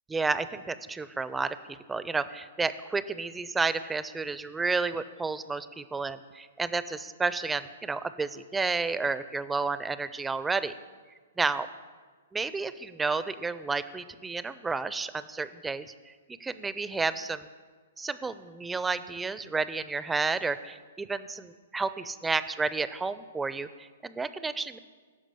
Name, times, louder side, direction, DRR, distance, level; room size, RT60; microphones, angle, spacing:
voice 1, 0.1-10.7 11.4-11.7 12.3-15.9 16.4-17.5 18.0-24.8, right 4 dB, 10° right, 14 dB, 0.4 m, -31 dB
12.0 x 5.0 x 7.6 m, 1.5 s
hypercardioid pair, 130°, 0 cm